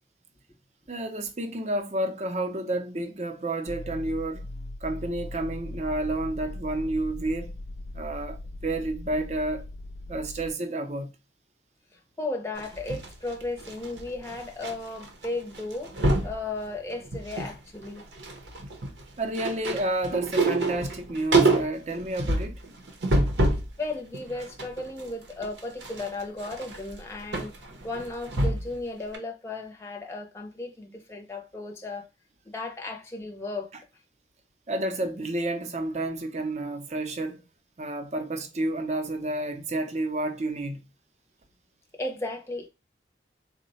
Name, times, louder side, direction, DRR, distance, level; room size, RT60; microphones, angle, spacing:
voice 1, 0.9-4.5 4.8-7.5 7.9-9.7 10.1-11.1 19.2-22.6 34.7-37.4 37.8-40.9, right 1 dB, 40° right, 0.6 m, -30 dB
sound 1, 3.7-10.5, left 1 dB, 85° left, 0.6 m, -39 dB
voice 2, 12.2-18.0 23.8-27.5 27.8-32.1 32.5-33.7 41.9-42.7, left 2 dB, 15° left, 0.6 m, -35 dB
sound 2, 12.6-14.7 15.0-15.3 15.5-16.4 16.9-17.6 17.9-23.7 24.1-28.8 29.1-29.2, right 2 dB, 85° right, 0.8 m, -27 dB
3.9 x 2.1 x 4.1 m
head